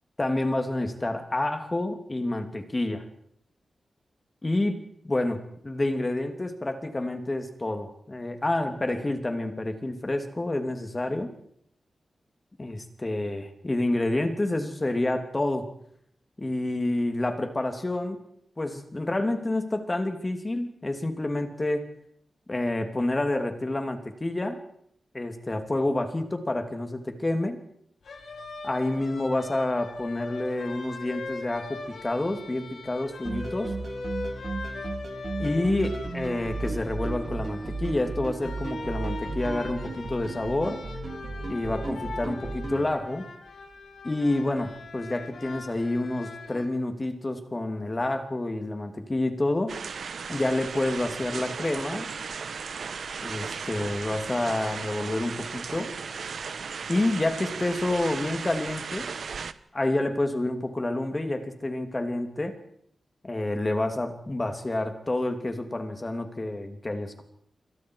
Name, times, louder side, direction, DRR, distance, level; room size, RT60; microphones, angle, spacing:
voice 1, 0.2-3.0 4.4-11.3 12.6-15.7 16.4-18.2 18.6-21.8 22.5-24.6 25.1-27.6 28.6-33.7 35.4-40.8 41.5-43.3 44.0-49.8 50.3-52.1 53.2-55.9 56.9-59.1 59.7-62.6 63.2-67.2, left 2 dB, 20° left, 6 dB, 2.9 m, -28 dB
sound 1, 28.0-46.6, left 3 dB, 80° left, 5.6 m, -41 dB
sound 2, 33.2-42.9, right 3 dB, 50° right, 3.9 m, -34 dB
sound 3, 49.7-59.5, right 5 dB, 70° right, 1.1 m, -36 dB
27.0 x 25.0 x 4.8 m, 0.68 s
wide cardioid pair, 130°, 0 cm